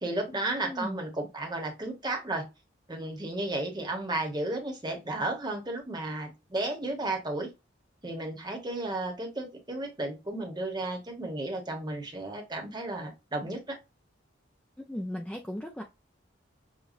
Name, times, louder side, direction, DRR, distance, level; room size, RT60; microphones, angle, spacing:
voice 1, 0.0-2.5 2.9-7.5 8.0-13.8, right 2 dB, 20° right, 1.0 m, -33 dB
voice 2, 0.6-1.0 14.9-15.8, left 1 dB, 5° left, 0.3 m, -36 dB
6.5 x 2.2 x 2.4 m
head